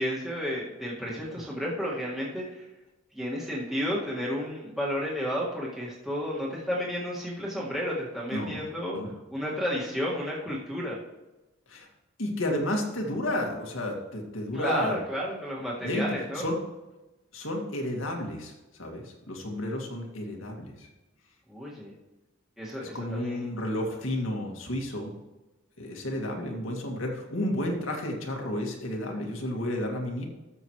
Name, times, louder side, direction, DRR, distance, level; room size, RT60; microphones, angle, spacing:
voice 1, 0.0-2.7 3.1-9.0 9.3-11.0 14.5-16.4 21.5-21.9 22.6-23.5, equal, ahead, -7 dB, 1.8 m, -32 dB
voice 2, 8.3-8.6 8.9-9.1 11.7-11.9 12.2-15.0 15.8-16.1 16.4-16.6 17.3-20.9 22.8-25.1 25.8-30.3, left 1 dB, 80° left, 1 dB, 2.1 m, -31 dB
13.5 x 7.2 x 3.1 m, 1.1 s
head